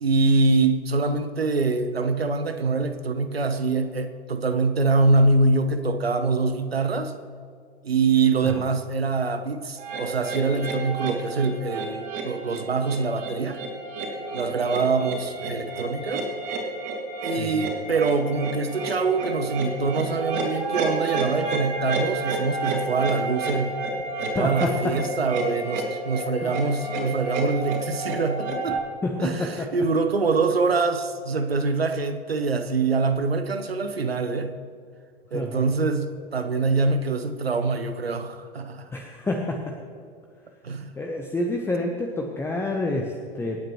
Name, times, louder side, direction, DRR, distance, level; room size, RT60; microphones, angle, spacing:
voice 1, 0.0-7.1 7.8-13.6 14.3-16.3 17.2-23.8 24.2-28.8 29.2-34.5 35.3-38.9 40.6-40.9, right 3 dB, 80° right, 9 dB, 1.0 m, -24 dB
sound 1, 9.8-28.8, right 2 dB, 40° right, 2.9 m, -30 dB
voice 2, 17.4-17.7 24.3-24.7 26.4-26.5 29.0-29.7 35.3-35.7 38.9-39.6 41.0-43.6, left 2 dB, 10° left, 1 dB, 1.0 m, -28 dB
26.5 x 9.0 x 3.1 m, 2.3 s
figure-of-eight pair, 95°, 30 cm